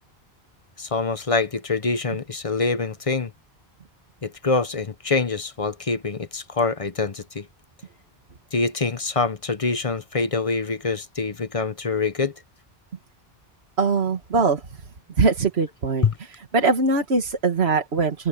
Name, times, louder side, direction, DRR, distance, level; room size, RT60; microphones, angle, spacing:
voice 1, 0.8-3.3 4.2-7.5 8.5-12.3 16.0-16.1, left 4 dB, 35° left, 0.9 m, -25 dB
voice 2, 13.8-14.6 15.2-16.0 16.5-18.3, right 4 dB, 80° right, 1.8 m, -21 dB
open air
omnidirectional pair, 1.1 m